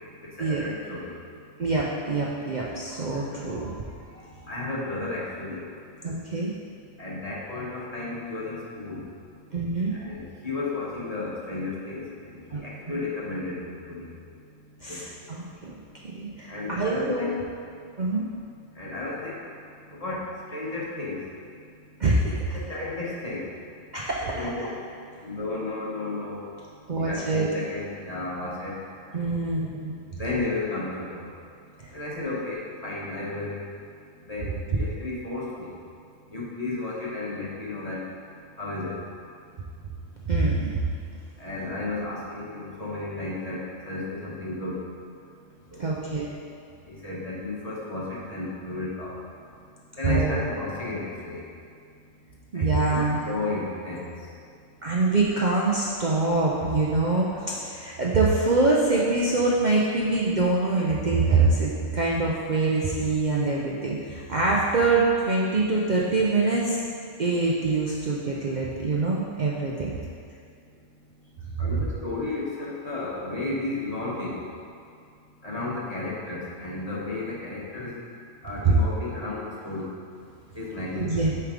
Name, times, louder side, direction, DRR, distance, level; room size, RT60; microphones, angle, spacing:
voice 1, 0.2-1.1 3.4-3.5 4.5-5.6 7.0-9.1 9.9-14.1 14.9-15.1 16.5-17.4 18.8-19.4 19.9-21.2 22.5-23.5 24.2-24.8 25.2-26.4 27.0-28.8 30.1-31.2 31.9-33.6 34.2-35.7 36.3-38.0 38.6-39.0 41.4-44.8 45.7-46.0 46.9-49.1 50.0-51.4 52.5-54.1 71.6-74.4 75.4-78.0 78.4-79.9 80.5-81.4, left 2 dB, 30° left, -6 dB, 1.3 m, -33 dB
voice 2, 1.6-3.8 4.1-4.2 6.0-6.5 9.5-9.9 12.5-13.0 14.8-15.7 16.0-17.4 18.0-18.3 22.0-22.6 23.9-24.7 26.9-27.5 29.1-29.9 31.8-31.9 40.3-40.7 45.8-46.3 50.1-50.4 52.5-53.2 54.8-66.8 67.2-69.9 80.9-81.4, right 3 dB, 45° right, -4 dB, 0.7 m, -25 dB
9.1 x 3.4 x 5.0 m, 2.3 s
omnidirectional pair, 1.3 m